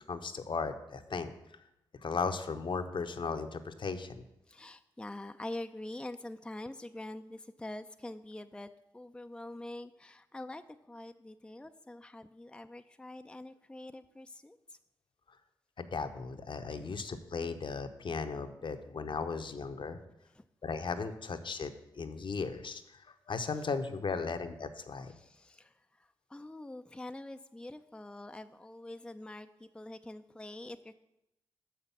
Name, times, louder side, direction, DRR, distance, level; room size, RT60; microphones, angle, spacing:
voice 1, 0.1-1.3 2.0-4.3 15.8-20.0 20.6-25.1, left 4 dB, 55° left, 8 dB, 0.8 m, -36 dB
voice 2, 4.5-14.8 16.7-17.1 18.6-18.8 20.3-20.5 23.6-23.7 24.1-24.3 25.1-30.9, left 1 dB, 10° left, 8 dB, 0.5 m, -45 dB
6.5 x 5.8 x 7.1 m, 0.85 s
supercardioid pair, 40°, 10 cm